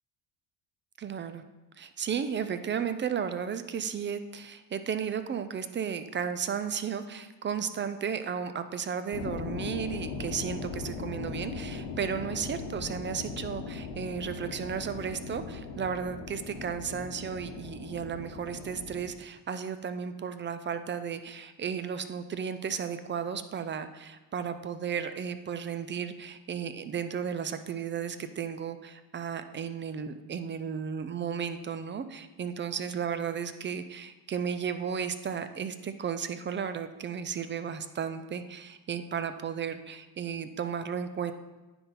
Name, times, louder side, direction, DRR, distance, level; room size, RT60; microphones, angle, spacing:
voice 1, 1.0-1.4 1.8-41.3, right 7 dB, 25° right, 11 dB, 0.4 m, -34 dB
sound 1, 9.1-19.1, left 4 dB, 85° left, 1.2 m, -39 dB
9.9 x 3.8 x 4.1 m, 1.1 s
supercardioid pair, 90°, 48 cm